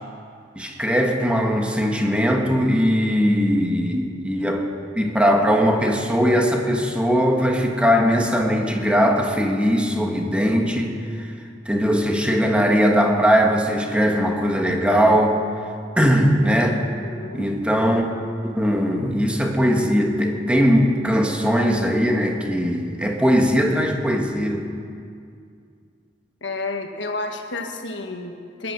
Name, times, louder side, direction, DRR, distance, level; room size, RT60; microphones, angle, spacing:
voice 1, 0.5-4.7 4.9-11.3 11.6-15.4 16.0-16.8 17.3-18.0 18.5-24.7, equal, 5° right, 1 dB, 1.5 m, -20 dB
voice 2, 17.0-17.5 26.4-28.7, left 3 dB, 80° left, 5 dB, 1.5 m, -31 dB
20.0 x 11.5 x 6.2 m, 2.3 s
head